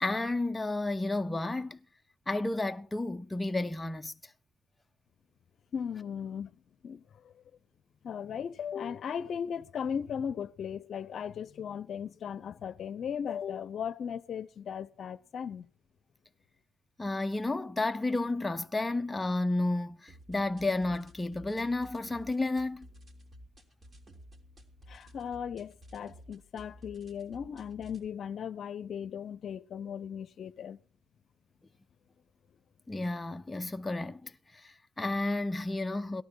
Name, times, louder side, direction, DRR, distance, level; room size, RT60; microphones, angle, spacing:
voice 1, 0.0-1.8 2.3-4.1 17.0-22.9 32.9-36.2, left 2 dB, 15° left, 0.7 m, -32 dB
voice 2, 5.7-6.5 6.8-7.3 8.0-15.7 24.9-30.8, left 7 dB, 60° left, 0.7 m, -37 dB
sound 1, 20.1-28.1, equal, 35° right, 3.4 m, -54 dB
18.0 x 12.0 x 4.7 m
cardioid pair, 90°, 0 cm